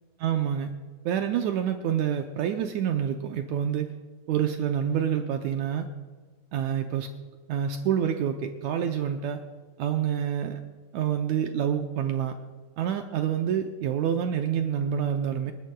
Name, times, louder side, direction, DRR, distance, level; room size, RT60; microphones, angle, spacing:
voice 1, 0.2-0.7 1.0-3.9 4.3-5.9 6.5-7.1 7.5-9.4 9.8-10.6 10.9-12.3 12.8-15.5, right 9 dB, 80° right, 5 dB, 1.7 m, -27 dB
27.5 x 12.0 x 2.3 m, 1.4 s
omnidirectional pair, 3.9 m